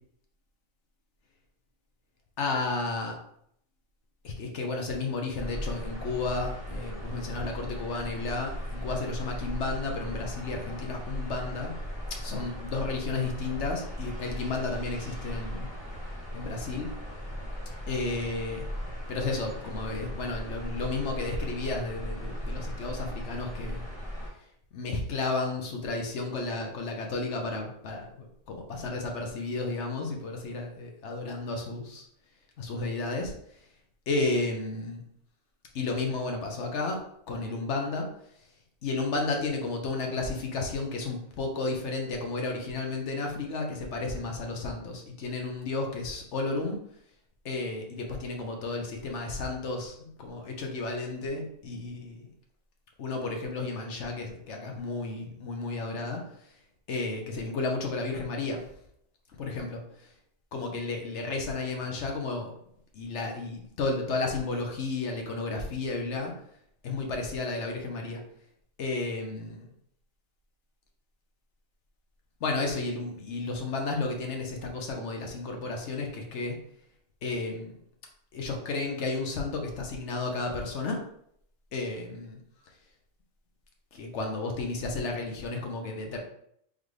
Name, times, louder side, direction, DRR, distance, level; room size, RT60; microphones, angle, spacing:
voice 1, 2.4-3.2 4.2-11.7 12.2-15.7 16.3-16.9 17.9-18.6 19.1-23.9 24.7-32.0 32.6-33.3 34.1-35.0 35.7-37.0 37.3-38.1 38.8-46.8 47.4-52.3 53.0-56.2 56.9-58.6 59.4-59.8 60.5-62.5 62.9-66.3 66.8-68.2 68.8-69.7 72.4-76.6 77.2-77.8 78.3-81.0 81.7-82.4 83.9-86.2, left 3 dB, 65° left, 2 dB, 1.1 m, -32 dB
sound 1, 5.4-24.3, equal, 20° left, 1.6 m, -37 dB
3.9 x 3.4 x 3.2 m, 0.70 s
omnidirectional pair, 1.3 m